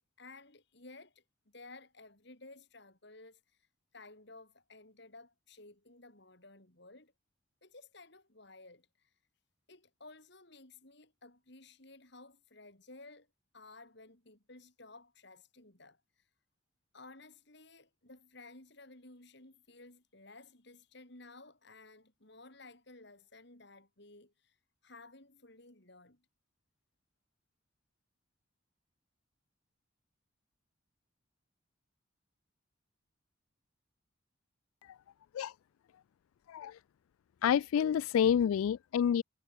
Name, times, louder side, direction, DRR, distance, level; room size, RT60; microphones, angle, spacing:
voice 1, 0.0-3.4 3.9-7.1 7.6-9.1 9.7-13.3 13.5-16.0 16.9-24.6 24.8-26.3, left 2 dB, 55° left, 3.9 m, -55 dB
voice 2, 36.5-36.8 37.4-39.2, left 8 dB, 90° left, 0.3 m, -28 dB
head